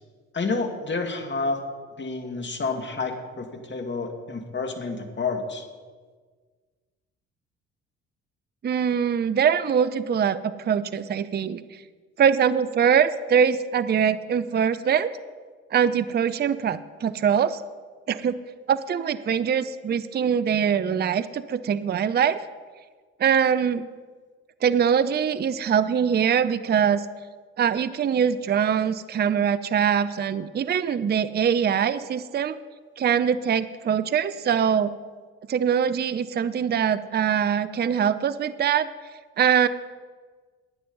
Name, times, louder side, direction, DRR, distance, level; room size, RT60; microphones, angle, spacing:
voice 1, 0.3-1.6 2.0-5.7, left 4 dB, 35° left, 4 dB, 2.2 m, -29 dB
voice 2, 8.6-11.6 12.2-15.1 15.7-17.6 18.1-18.4 18.7-22.4 23.2-23.9 24.6-27.1 27.6-32.6 33.0-34.9 35.5-38.9 39.4-39.7, right 8 dB, 30° right, 14 dB, 0.6 m, -23 dB
12.0 x 9.3 x 5.4 m, 1.5 s
hypercardioid pair, 50°, 33 cm